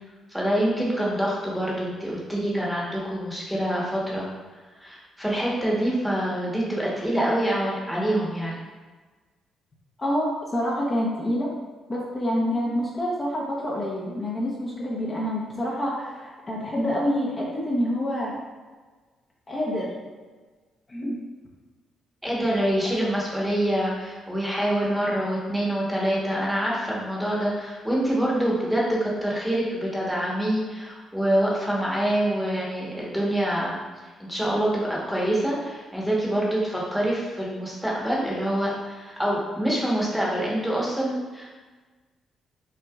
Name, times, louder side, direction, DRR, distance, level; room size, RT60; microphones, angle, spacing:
voice 1, 0.3-4.3 4.8-8.6 22.2-33.8 34.2-41.5, right 1 dB, ahead, -5 dB, 1.2 m, -26 dB
voice 2, 10.0-11.5 11.9-18.3 19.5-19.9 20.9-21.2, equal, 30° left, -5 dB, 0.9 m, -27 dB
5.7 x 2.9 x 2.4 m, 1.4 s
cardioid pair, 90°, 0 cm